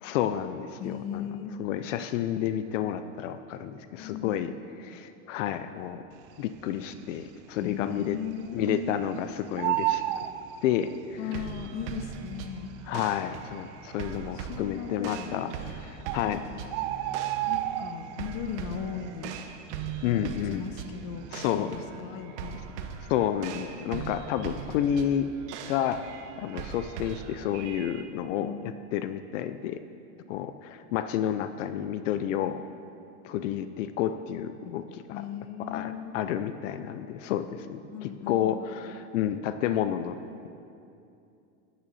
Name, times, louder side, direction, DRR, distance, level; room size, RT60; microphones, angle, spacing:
voice 1, 0.0-1.2 1.6-4.5 4.8-6.0 6.4-8.2 8.5-10.0 10.6-11.3 12.9-16.4 20.0-20.6 21.3-21.8 23.1-25.3 25.7-26.0 26.4-29.8 30.3-32.6 33.2-35.3 35.6-40.2, left 10 dB, 70° left, 11 dB, 0.6 m, -30 dB
voice 2, 0.8-1.5 4.0-4.5 7.6-8.9 11.2-12.7 14.3-15.4 16.3-16.7 17.5-19.3 20.0-20.2 20.5-22.6 28.4-28.8 35.1-36.1 37.9-38.6, left 7 dB, 35° left, 8 dB, 0.7 m, -37 dB
Bird, 6.7-7.2 7.6-7.7 7.9-9.1 9.4-11.2 12.1-12.2 12.8-12.9 13.1-13.2 13.9-14.3 15.3-15.4 15.7-15.8 16.1-18.3 18.7-19.0 19.3-20.7 21.0-21.3, right 14 dB, 45° right, 0.4 m, -31 dB
sound 1, 11.3-28.0, right 7 dB, 65° right, 1.0 m, -40 dB
12.5 x 9.4 x 4.1 m, 2.6 s
supercardioid pair, 145°, 38 cm